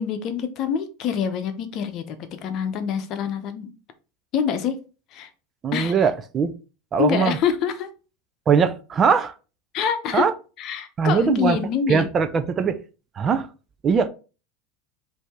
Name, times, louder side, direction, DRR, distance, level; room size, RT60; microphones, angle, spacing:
voice 1, 0.0-2.2 2.4-3.7 4.3-4.8 5.1-5.3 5.7-5.9 7.0-7.9 9.7-10.3 10.6-12.1, left 7 dB, 50° left, 0.8 m, -25 dB
voice 2, 5.6-6.5 6.9-7.4 8.5-9.3 10.1-10.3 11.0-11.6 11.9-12.8 13.2-13.5 13.8-14.1, right 6 dB, 30° right, 0.5 m, -21 dB
5.2 x 2.8 x 3.6 m
hypercardioid pair, 95°, 0 cm